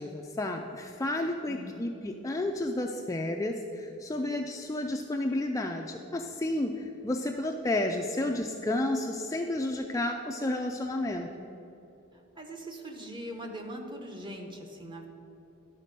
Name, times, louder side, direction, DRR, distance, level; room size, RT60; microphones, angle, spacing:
voice 1, 0.0-11.5, left 1 dB, 15° left, 2 dB, 0.3 m, -31 dB
voice 2, 1.5-2.0 12.4-15.1, equal, 25° right, 3 dB, 0.9 m, -41 dB
11.5 x 4.1 x 6.6 m, 2.9 s
head